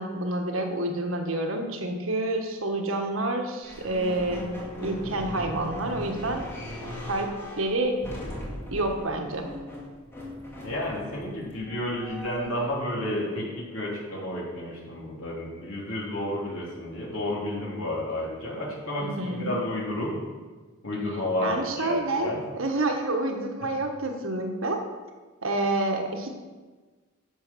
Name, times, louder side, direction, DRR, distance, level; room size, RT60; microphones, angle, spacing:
voice 1, 0.0-4.5 4.8-6.5 7.1-8.0 8.7-9.5 19.0-19.6 21.4-24.8 25.4-26.3, right 2 dB, 85° right, 3 dB, 1.5 m, -28 dB
sound 1, 3.6-12.7, left 1 dB, 10° left, 2.5 m, -38 dB
voice 2, 10.6-20.1 20.8-22.4, left 1 dB, 80° left, -5 dB, 3.3 m, -31 dB
11.0 x 7.1 x 6.2 m, 1.3 s
head